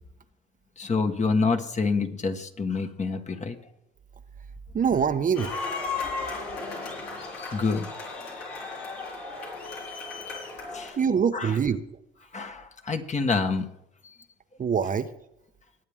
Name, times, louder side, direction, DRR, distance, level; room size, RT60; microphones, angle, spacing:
voice 1, 0.8-3.6 7.5-7.9 10.7-11.0 11.3-11.6 12.3-13.7, left 4 dB, 35° left, 5 dB, 1.5 m, -27 dB
voice 2, 4.7-5.5 11.0-11.8 14.6-15.1, right 7 dB, 40° right, 9 dB, 0.9 m, -24 dB
sound 1, 5.3-10.9, left 4 dB, 85° left, 4.4 m, -35 dB
20.5 x 8.6 x 3.6 m, 0.81 s
supercardioid pair, 70°, 21 cm